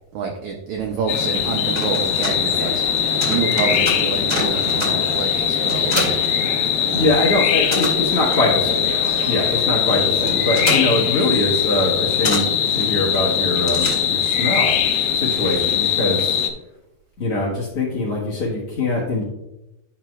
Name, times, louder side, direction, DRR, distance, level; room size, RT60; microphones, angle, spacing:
voice 1, 0.1-6.2 6.8-7.1 8.9-9.6, right 6 dB, 85° right, 2 dB, 1.6 m, -28 dB
sound 1, 0.7-15.8, right 2 dB, 65° right, 1.4 m, -35 dB
sound 2, 1.1-16.5, left 9 dB, 80° left, 2.5 m, -21 dB
sound 3, 1.7-7.1 7.4-14.4, equal, 25° left, 0.9 m, -29 dB
voice 2, 6.9-8.9 9.3-14.8 15.1-16.4 17.2-19.2, left 2 dB, 55° left, -5 dB, 1.7 m, -22 dB
10.5 x 5.8 x 2.4 m, 0.94 s
omnidirectional pair, 4.2 m